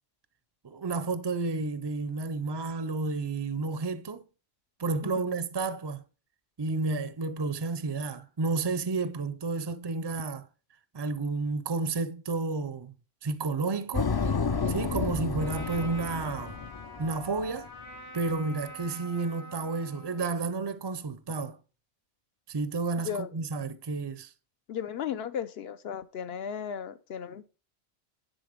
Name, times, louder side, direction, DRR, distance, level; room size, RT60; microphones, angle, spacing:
voice 1, 0.6-4.3 4.8-6.0 6.6-10.5 10.9-12.9 13.2-14.2 14.7-16.6 17.0-17.7 18.1-21.6 22.5-24.3, right 3 dB, 35° right, 0.4 m, -31 dB
sound 1, 13.9-17.7, left 5 dB, 40° left, 0.3 m, -31 dB
Trumpet, 15.4-20.3, equal, 90° left, 2.3 m, -45 dB
voice 2, 24.7-27.4, left 8 dB, 70° left, 0.9 m, -35 dB
10.0 x 3.9 x 5.1 m
omnidirectional pair, 1.1 m